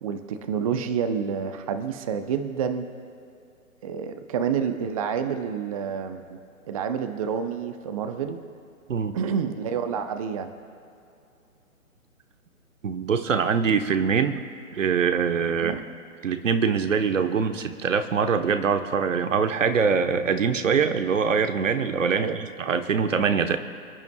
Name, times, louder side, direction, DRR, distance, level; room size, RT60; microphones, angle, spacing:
voice 1, 0.0-2.9 3.8-6.4 6.7-8.4 9.1-10.5 15.6-15.8 20.7-20.9 22.1-22.4, right 7 dB, 25° right, 8 dB, 0.6 m, -28 dB
voice 2, 12.8-14.4 14.7-15.8 16.2-23.6, right 6 dB, 60° right, 8 dB, 1.1 m, -23 dB
28.5 x 10.5 x 2.3 m, 2.5 s
figure-of-eight pair, 135°, 43 cm